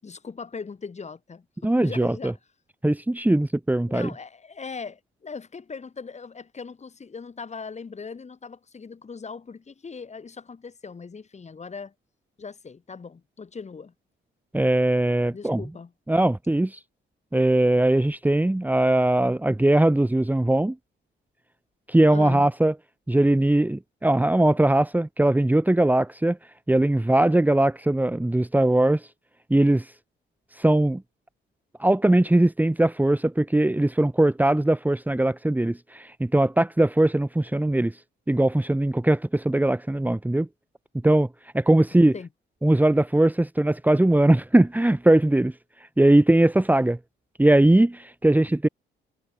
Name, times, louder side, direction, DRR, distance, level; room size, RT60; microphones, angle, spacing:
voice 1, 0.0-2.4 3.9-11.9 12.4-13.9 15.3-15.9 22.1-22.5 41.9-42.3, left 5 dB, 35° left, 5.2 m, -39 dB
voice 2, 1.6-2.3 2.8-4.1 14.5-15.6 16.1-16.8 17.3-20.7 21.9-22.7 23.1-26.4 26.7-29.0 29.5-29.9 30.6-31.0 31.8-37.9 38.3-40.5 41.0-41.3 41.5-42.1 42.6-45.5 46.0-47.0 47.4-48.7, right 1 dB, 10° right, 1.8 m, -20 dB
cardioid pair, 90°, 20 cm